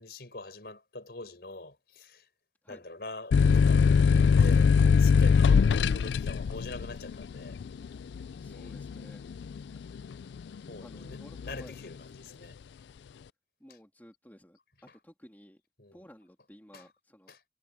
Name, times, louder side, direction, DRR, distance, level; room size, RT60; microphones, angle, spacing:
voice 1, 0.0-2.3 2.7-3.9 4.3-4.7 5.0-7.6 8.5-8.9 9.3-9.7 10.7-12.6 13.7-13.8 14.9-15.0 15.8-16.1 16.7-16.9 17.3-17.4, left 2 dB, 60° left, 5.1 m, -44 dB
sound 1, 3.3-10.6 11.0-11.7, left 6 dB, 75° left, 0.3 m, -22 dB
voice 2, 8.4-9.6 10.8-11.8 13.6-15.6 15.9-17.3, equal, 10° left, 2.6 m, -54 dB
head